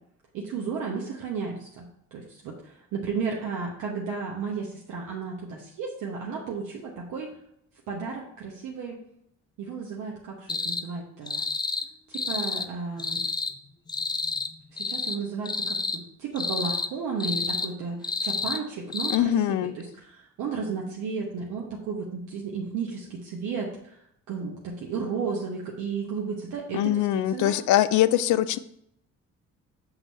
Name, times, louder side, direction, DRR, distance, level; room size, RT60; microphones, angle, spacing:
voice 1, 0.3-7.3 7.9-9.0 9.6-11.4 12.1-13.2 14.7-27.5, right 5 dB, 90° right, -2 dB, 1.0 m, -33 dB
sound 1, 10.5-10.8 11.3-11.9 12.1-12.7 13.0-13.5 13.9-14.5 14.8-15.2 15.4-16.0 16.4-16.9 17.2-17.7 18.0-18.6 18.9-19.2, left 4 dB, 15° left, 0.4 m, -29 dB
voice 2, 19.1-19.7 26.7-28.6, left 12 dB, 75° left, 14 dB, 0.5 m, -22 dB
6.2 x 3.9 x 5.5 m, 0.74 s
cardioid pair, 90°, 30 cm